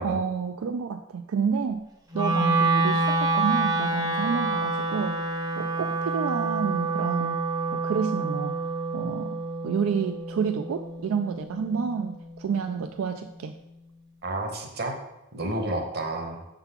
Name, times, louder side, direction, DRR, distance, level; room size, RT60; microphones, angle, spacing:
voice 1, 0.0-1.9 2.1-5.2 5.6-7.4 7.7-8.6 8.9-13.5, right 6 dB, 80° right, 7 dB, 0.4 m, -29 dB
Wind instrument woodwind instrument, 2.1-12.3, right 3 dB, 15° right, 0.6 m, -27 dB
voice 2, 14.2-15.0 15.3-16.4, right 1 dB, 50° right, 3 dB, 1.0 m, -30 dB
5.7 x 3.9 x 5.6 m, 0.94 s
head